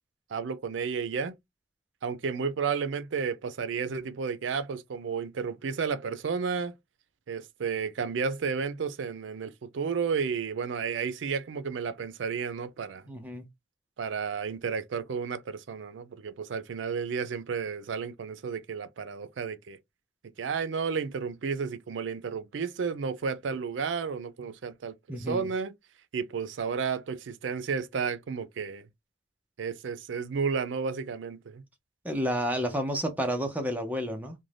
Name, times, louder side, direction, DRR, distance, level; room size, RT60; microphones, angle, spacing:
voice 1, 0.3-1.3 2.0-6.8 7.3-13.1 14.0-19.8 20.4-25.7 26.1-28.9 29.6-31.6, right 5 dB, 90° right, 0.4 m, -32 dB
voice 2, 13.1-13.4 25.1-25.5 32.0-34.3, equal, 10° right, 0.6 m, -30 dB
2.5 x 2.1 x 3.2 m
head